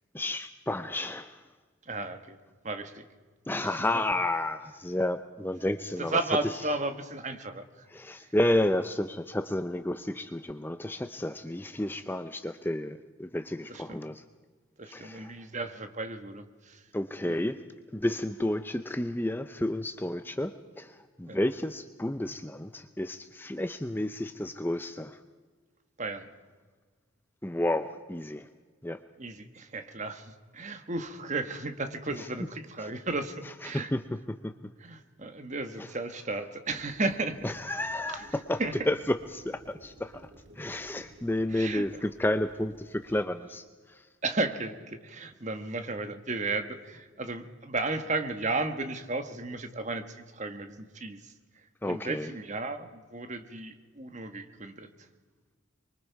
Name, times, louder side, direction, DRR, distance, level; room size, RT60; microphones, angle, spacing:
voice 1, 0.1-1.4 3.5-6.2 7.9-14.2 14.9-15.3 16.9-17.6 17.9-25.2 27.4-28.5 28.8-29.0 32.2-32.3 32.8-32.9 33.6-34.0 34.4-34.5 35.8-35.9 37.4-38.6 38.9-40.3 40.6-44.0 51.8-52.3, left 1 dB, 10° left, 9 dB, 0.5 m, -31 dB
voice 2, 1.9-2.4 2.6-3.0 3.6-4.0 6.0-7.8 13.7-14.0 14.8-16.8 17.3-17.4 21.2-21.4 26.0-26.3 29.2-33.9 34.8-37.4 38.1-38.3 38.6-38.9 41.5-41.9 44.2-51.3 51.9-54.9, right 2 dB, 35° right, 8 dB, 1.4 m, -34 dB
sound 1, 36.7-43.2, equal, 60° right, 2.3 m, -54 dB
25.5 x 23.5 x 4.7 m, 1.4 s
head